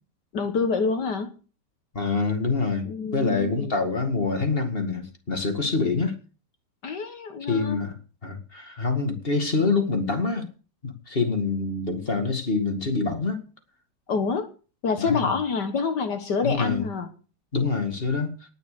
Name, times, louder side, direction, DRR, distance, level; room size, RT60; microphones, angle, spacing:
voice 1, 0.3-1.3 2.9-3.7 6.8-7.8 14.1-14.5 14.8-17.1, left 5 dB, 65° left, 2.0 m, -27 dB
voice 2, 1.9-6.1 7.4-10.5 10.8-13.4 15.0-15.3 16.4-16.9 17.5-18.4, left 4 dB, 30° left, 2.3 m, -26 dB
19.0 x 6.8 x 6.7 m
omnidirectional pair, 2.0 m